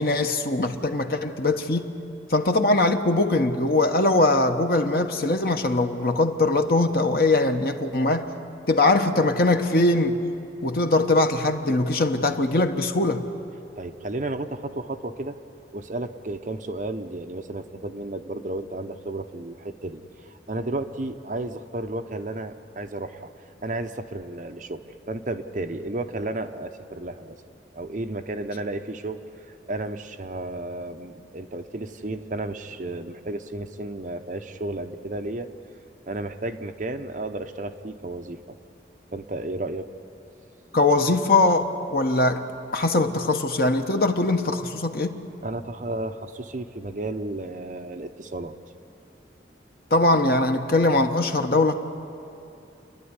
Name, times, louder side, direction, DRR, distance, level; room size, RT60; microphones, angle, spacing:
voice 1, 0.0-1.9 2.3-8.3 8.7-10.2 10.6-13.2 40.7-42.4 42.7-45.2 49.9-51.7, left 2 dB, 55° left, 5 dB, 1.2 m, -21 dB
voice 2, 13.7-15.4 15.7-20.0 20.3-23.3 23.6-27.4 27.7-29.2 29.7-35.5 36.1-38.6 39.1-39.9 45.4-48.5, right 2 dB, 45° right, 7 dB, 0.8 m, -33 dB
29.5 x 11.0 x 9.7 m, 2.7 s
head